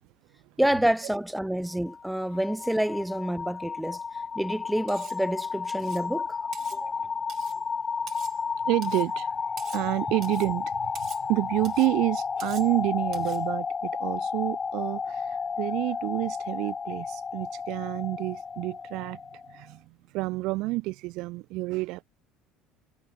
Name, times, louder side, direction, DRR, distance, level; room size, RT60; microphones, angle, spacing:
voice 1, 0.6-4.0 4.4-6.3 6.7-7.1, right 1 dB, ahead, 0.7 m, -28 dB
sound 1, 1.7-19.6, left 5 dB, 20° left, 0.3 m, -32 dB
Cutlery silverware, 4.9-5.2 5.7-6.1 6.5-6.8 7.3-7.6 8.1-8.4 8.8-9.1 9.6-9.9 10.2-10.5 10.9-11.3 11.6-11.9 12.4-12.7 13.1-13.4, right 11 dB, 40° right, 5.2 m, -46 dB
voice 2, 8.6-9.4 9.7-19.2 19.5-22.0, right 21 dB, 65° right, 0.7 m, -29 dB
cardioid pair, 150°, 0 cm